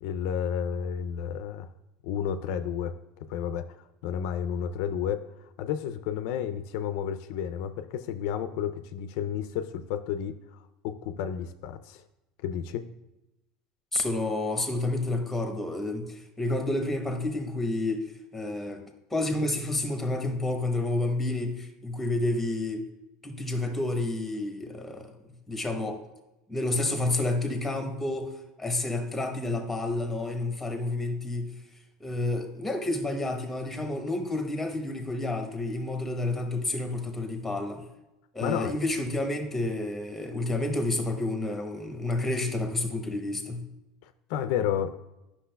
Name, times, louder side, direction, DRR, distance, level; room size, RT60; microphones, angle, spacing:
voice 1, 0.0-1.7 2.0-2.9 3.3-3.7 4.0-5.3 5.6-12.0 12.4-12.9 38.4-38.7 44.0-45.0, left 8 dB, 70° left, 9 dB, 0.4 m, -31 dB
voice 2, 13.9-18.8 19.1-22.8 23.2-25.2 25.5-26.0 26.5-28.3 28.6-31.5 32.0-37.9 38.3-43.6, left 2 dB, 5° left, 5 dB, 0.9 m, -30 dB
10.0 x 5.9 x 2.2 m, 0.96 s
supercardioid pair, 130°, 2 cm